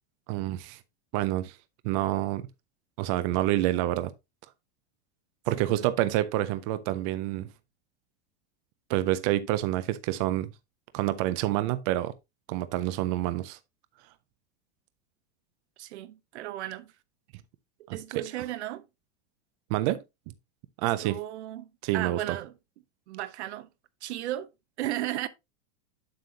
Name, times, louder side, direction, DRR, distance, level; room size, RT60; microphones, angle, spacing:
voice 1, 0.3-0.8 1.1-1.6 1.8-2.4 3.0-4.1 5.5-7.5 8.9-10.5 10.9-12.1 12.5-13.6 17.9-18.2 19.7-20.0 20.8-21.2 21.8-22.4, right 15 dB, 30° right, 0.4 m, -27 dB
voice 2, 5.6-5.9 15.8-16.9 17.9-18.9 20.8-22.5 23.1-23.7 24.0-24.5 24.8-25.3, right 14 dB, 75° right, 0.9 m, -35 dB
7.6 x 6.7 x 2.7 m
supercardioid pair, 165°, 34 cm